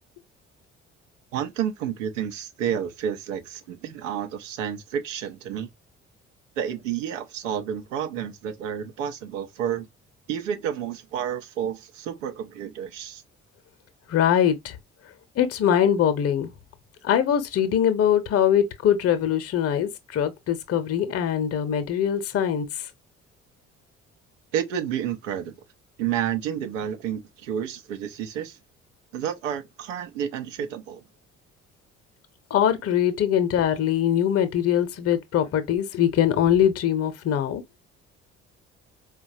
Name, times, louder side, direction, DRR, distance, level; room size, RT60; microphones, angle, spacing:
voice 1, 1.3-5.7 6.6-9.9 10.3-13.2 24.5-25.5 26.0-28.6 29.1-31.0, right 9 dB, 75° right, 0.7 m, -30 dB
voice 2, 14.1-14.8 15.4-16.5 17.0-22.7 32.5-37.6, left 9 dB, 40° left, 0.8 m, -22 dB
4.5 x 2.3 x 2.6 m
figure-of-eight pair, 45°, 38 cm